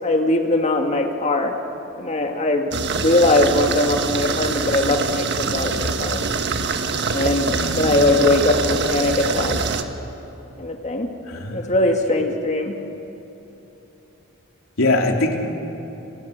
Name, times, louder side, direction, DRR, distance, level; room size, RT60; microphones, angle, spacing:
voice 1, 0.0-1.5 1.9-6.2 7.1-9.6 10.6-11.1 11.5-12.8, left 2 dB, 35° left, 3 dB, 2.1 m, -20 dB
sound 1, 2.7-9.8, right 4 dB, 55° right, 1.5 m, -24 dB
voice 2, 7.5-8.0 11.3-11.6 14.8-15.4, left 2 dB, 80° left, 2 dB, 3.3 m, -22 dB
30.0 x 28.0 x 6.7 m, 3.0 s
head